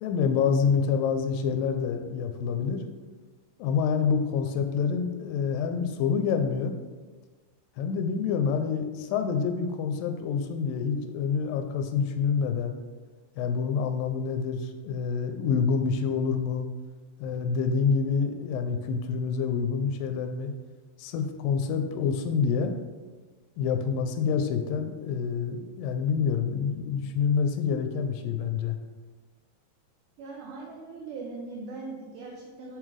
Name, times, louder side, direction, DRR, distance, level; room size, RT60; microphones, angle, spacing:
voice 1, 0.0-2.8 3.6-6.8 7.8-12.8 13.4-16.7 17.2-20.5 21.0-22.7 23.6-28.8, left 6 dB, 90° left, 7 dB, 2.3 m, -27 dB
voice 2, 30.2-32.8, right 3 dB, 70° right, -1 dB, 2.2 m, -40 dB
8.8 x 7.3 x 3.3 m, 1.3 s
omnidirectional pair, 4.0 m